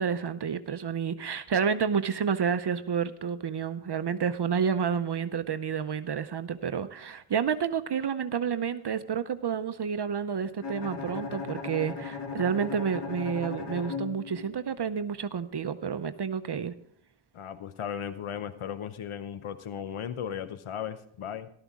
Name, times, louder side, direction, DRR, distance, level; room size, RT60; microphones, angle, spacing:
voice 1, 0.0-16.7, right 7 dB, 55° right, 0.7 m, -30 dB
Bowed string instrument, 10.6-14.7, left 5 dB, 55° left, 1.6 m, -37 dB
voice 2, 17.3-21.5, left 8 dB, 80° left, 0.8 m, -36 dB
14.0 x 12.5 x 3.6 m
wide cardioid pair, 60°, 49 cm